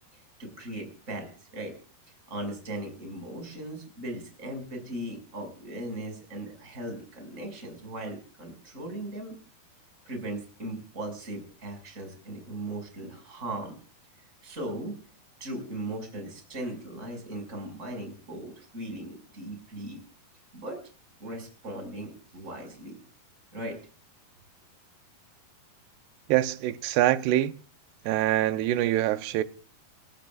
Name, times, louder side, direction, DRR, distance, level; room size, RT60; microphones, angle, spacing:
voice 1, 0.4-1.8 2.3-9.4 10.0-13.8 14.4-15.0 15.4-20.0 20.5-20.8 21.2-23.0 23.5-23.8, right 1 dB, 20° right, 5.9 m, -38 dB
voice 2, 26.3-27.6 28.0-29.4, right 14 dB, 90° right, 2.9 m, -24 dB
28.5 x 15.0 x 2.4 m
omnidirectional pair, 4.6 m